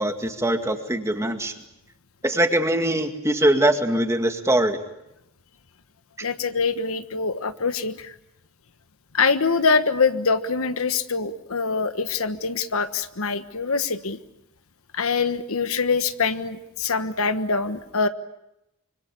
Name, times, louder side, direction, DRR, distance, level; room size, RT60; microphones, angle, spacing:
voice 1, 0.0-1.5 2.2-4.8, right 1 dB, 15° right, 6 dB, 2.1 m, -22 dB
voice 2, 6.2-8.1 9.1-14.2 14.9-18.1, left 4 dB, 85° left, 11 dB, 1.3 m, -24 dB
26.0 x 25.0 x 8.5 m, 0.87 s
head